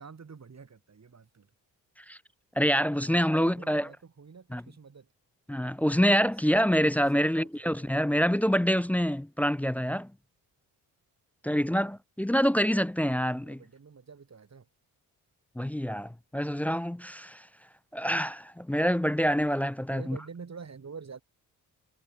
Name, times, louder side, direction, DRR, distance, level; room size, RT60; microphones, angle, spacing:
voice 1, 0.0-1.5 3.0-5.1 6.6-7.9 11.5-11.9 13.4-14.7 19.9-21.2, right 5 dB, 35° right, 2.4 m, -48 dB
voice 2, 2.6-3.9 4.5-4.6 5.5-10.1 11.4-13.6 15.6-17.5 17.9-20.2, equal, 5° left, 0.4 m, -26 dB
hypercardioid pair, 40°, 48 cm